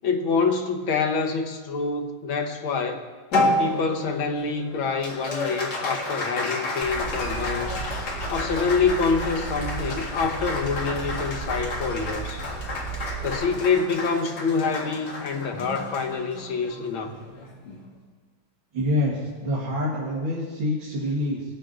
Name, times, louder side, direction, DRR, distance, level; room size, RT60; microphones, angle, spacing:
voice 1, 0.0-3.0 3.6-7.8 8.3-12.5 13.2-17.2 17.7-17.8, left 5 dB, 75° left, 5 dB, 1.8 m, -26 dB
Applause, 3.3-18.0, left 2 dB, 55° left, 2.3 m, -31 dB
sound 1, 6.8-13.5, right 4 dB, 55° right, 4.1 m, -35 dB
voice 2, 18.7-21.4, left 1 dB, 70° right, -5 dB, 2.4 m, -26 dB
19.5 x 8.1 x 3.8 m, 1.4 s
omnidirectional pair, 2.2 m